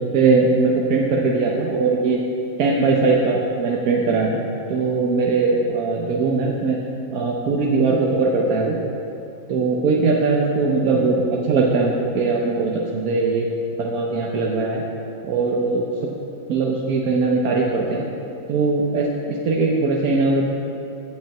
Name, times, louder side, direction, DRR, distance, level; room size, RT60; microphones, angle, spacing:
voice 1, 0.0-2.2 2.6-4.4 4.7-6.8 7.1-8.8 9.5-13.5 13.8-14.8 15.2-16.1 16.5-18.0 18.5-20.5, right 3 dB, 60° right, -2 dB, 1.1 m, -20 dB
8.3 x 6.5 x 8.2 m, 2.9 s
omnidirectional pair, 2.1 m